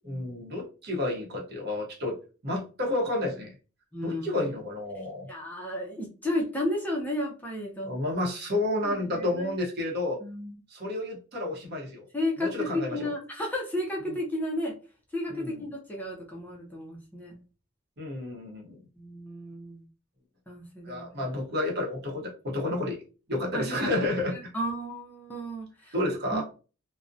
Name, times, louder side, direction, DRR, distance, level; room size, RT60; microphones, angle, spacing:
voice 1, 0.0-2.2 2.4-3.5 4.0-5.3 7.8-10.2 10.7-12.0 12.4-13.1 15.3-15.6 18.0-18.8 20.8-23.0 23.3-24.3 25.9-26.4, left 1 dB, 50° right, -1 dB, 0.8 m, -30 dB
voice 2, 3.9-4.5 5.3-7.9 8.8-9.6 10.2-10.6 12.1-14.7 15.1-17.4 19.0-19.8 20.5-21.2 23.5-23.9 24.3-25.9 26.3-26.4, left 1 dB, 10° left, -2 dB, 0.5 m, -33 dB
2.4 x 2.0 x 2.5 m, 0.35 s
head